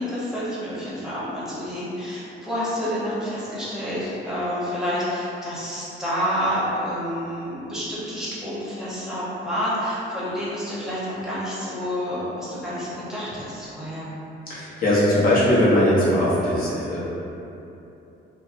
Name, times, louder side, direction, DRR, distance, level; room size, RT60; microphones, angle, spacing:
voice 1, 0.0-14.1, equal, 5° right, -10 dB, 0.9 m, -29 dB
voice 2, 14.5-17.0, left 1 dB, 45° left, -9 dB, 1.0 m, -20 dB
2.7 x 2.1 x 2.5 m, 2.9 s
cardioid pair, 90°, 20 cm